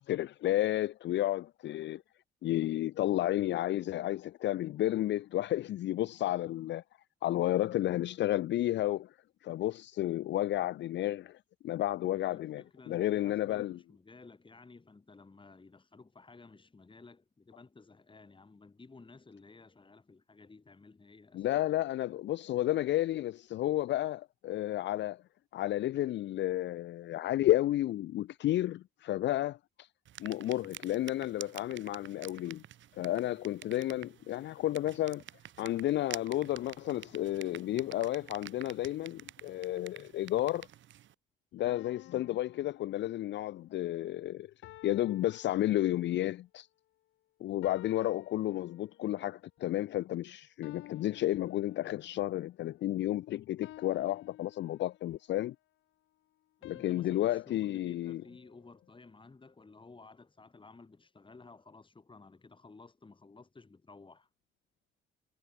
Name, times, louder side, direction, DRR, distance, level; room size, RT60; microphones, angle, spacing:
voice 1, 0.1-2.0 2.4-6.8 7.2-9.2 9.4-13.8 21.3-25.2 25.5-29.9 30.2-32.6 33.0-35.2 35.6-40.7 41.5-44.5 44.8-46.7 47.4-55.6 56.6-58.2, left 14 dB, 65° left, 0.5 m, -32 dB
voice 2, 12.0-21.7 56.6-64.3, left 3 dB, 25° left, 5.8 m, -55 dB
sound 1, 30.1-41.1, right 12 dB, 70° right, 2.3 m, -49 dB
sound 2, 41.6-43.6 44.6-46.3 47.6-49.2 50.6-52.3 53.6-55.2 56.6-59.0, left 15 dB, 90° left, 3.0 m, -54 dB
cardioid pair, 90°, 20 cm